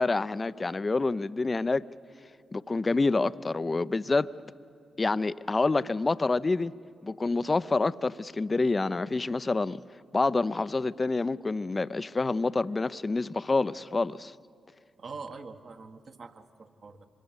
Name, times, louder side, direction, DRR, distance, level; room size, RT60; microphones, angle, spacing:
voice 1, 0.0-1.9 2.5-4.3 5.0-6.8 7.0-9.8 10.1-14.3, left 3 dB, 35° left, 0.6 m, -27 dB
voice 2, 15.0-17.1, right 4 dB, 60° right, 1.7 m, -44 dB
25.5 x 22.0 x 8.2 m
hypercardioid pair, 40°, 0 cm